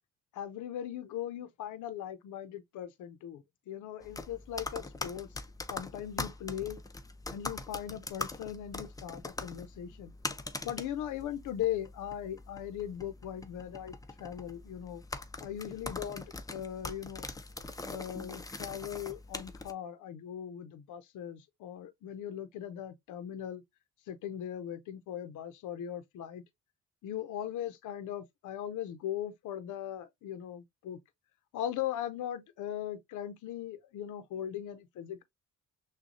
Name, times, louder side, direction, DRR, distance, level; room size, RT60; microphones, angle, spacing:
voice 1, 0.3-5.3 5.7-6.8 7.3-10.1 10.6-15.0 15.4-17.3 17.9-23.6 24.1-26.4 27.0-31.0 31.5-35.2, left 10 dB, 80° left, 0.7 m, -39 dB
sound 1, 4.0-19.7, left 3 dB, 10° left, 0.5 m, -42 dB
6.2 x 2.3 x 2.6 m
cardioid pair, 90°, 30 cm